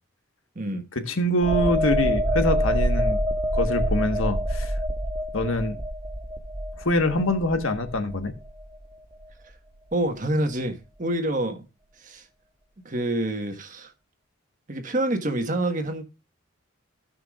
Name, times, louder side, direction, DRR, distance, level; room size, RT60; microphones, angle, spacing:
voice 1, 0.9-3.2 3.5-4.7 5.3-5.8 6.8-8.3, left 1 dB, 75° left, 1.4 m, -24 dB
sound 1, 1.4-8.9 9.2-9.4, equal, 15° right, 1.1 m, -26 dB
voice 2, 9.9-11.6 12.0-12.2 12.8-13.9 14.7-16.0, right 1 dB, 40° right, 1.4 m, -27 dB
16.0 x 5.9 x 2.4 m
head